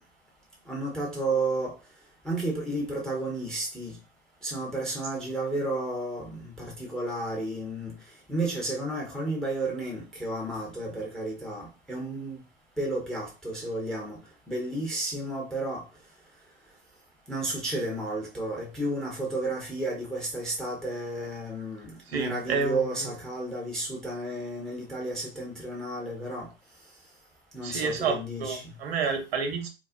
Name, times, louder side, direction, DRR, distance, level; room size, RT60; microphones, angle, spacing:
voice 1, 0.7-1.8 2.2-4.0 4.4-7.9 8.3-12.4 12.8-14.2 14.5-15.8 17.3-26.5 27.5-28.7, right 2 dB, ahead, 0.4 m, -32 dB
voice 2, 22.1-23.1 27.6-29.7, right 5 dB, 65° right, 0.7 m, -29 dB
2.4 x 2.0 x 2.5 m
hypercardioid pair, 105°, 33 cm